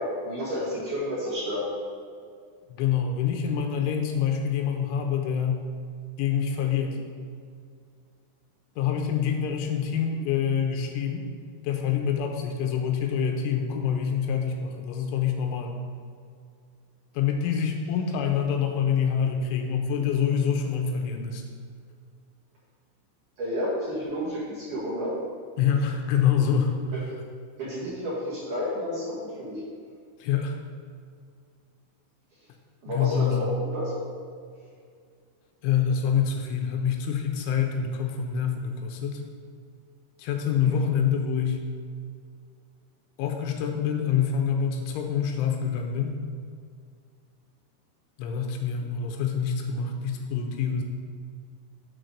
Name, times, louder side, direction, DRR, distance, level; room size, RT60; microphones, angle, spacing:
voice 1, 0.0-1.6 23.4-25.1 26.9-27.0 27.6-29.6 32.8-33.9 40.6-40.8, equal, 55° right, -9 dB, 2.6 m, -31 dB
voice 2, 2.7-5.7 6.2-7.0 8.8-11.3 11.6-15.8 17.1-21.4 25.6-26.8 30.2-30.6 32.9-33.5 35.6-39.2 40.2-41.6 43.2-46.2 48.2-50.8, left 7 dB, 85° left, 3 dB, 3.0 m, -26 dB
7.7 x 4.6 x 6.6 m, 2.2 s
omnidirectional pair, 5.7 m